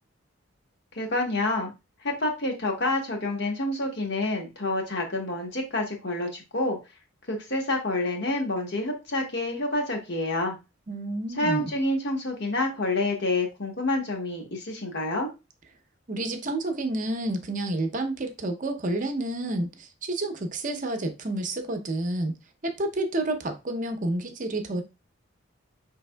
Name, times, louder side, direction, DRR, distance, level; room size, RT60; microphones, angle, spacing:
voice 1, 0.9-1.7 2.0-6.8 7.3-10.6 11.4-15.3, left 2 dB, 55° left, 1 dB, 1.1 m, -28 dB
voice 2, 10.9-11.7 16.1-22.3 22.6-24.8, right 2 dB, 40° right, 6 dB, 0.6 m, -29 dB
5.2 x 3.3 x 2.2 m, 0.27 s
head